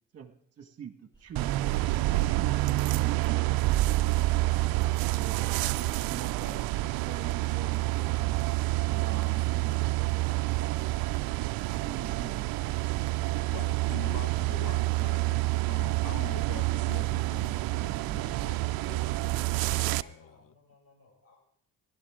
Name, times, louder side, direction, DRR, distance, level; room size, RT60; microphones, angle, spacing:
voice 1, 0.1-0.9 1.2-1.5 1.9-4.6 5.1-8.4 8.9-11.3 11.7-12.9, right 7 dB, 45° right, 7 dB, 1.7 m, -45 dB
sound 1, 1.1-20.1, right 2 dB, 10° left, 4.4 m, -58 dB
sound 2, 1.4-20.0, right 19 dB, 75° right, 0.5 m, -28 dB
voice 2, 13.5-20.5, left 9 dB, 60° left, 13 dB, 1.0 m, -45 dB
voice 3, 20.0-21.4, left 3 dB, 40° left, -1 dB, 7.2 m, -60 dB
19.0 x 12.5 x 3.7 m, 0.64 s
cardioid pair, 90°, 36 cm